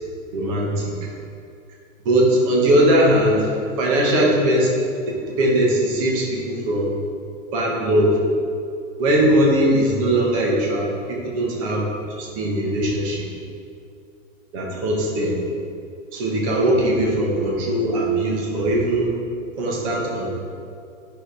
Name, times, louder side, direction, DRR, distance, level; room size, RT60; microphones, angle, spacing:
voice 1, 0.3-0.9 2.0-4.7 5.1-6.9 7.5-8.2 9.0-11.9 12.2-13.3 14.5-15.4 16.1-19.1 19.6-20.3, right 1 dB, 25° right, -2 dB, 1.3 m, -20 dB
10.5 x 6.6 x 3.4 m, 2.4 s
hypercardioid pair, 175°, 40 cm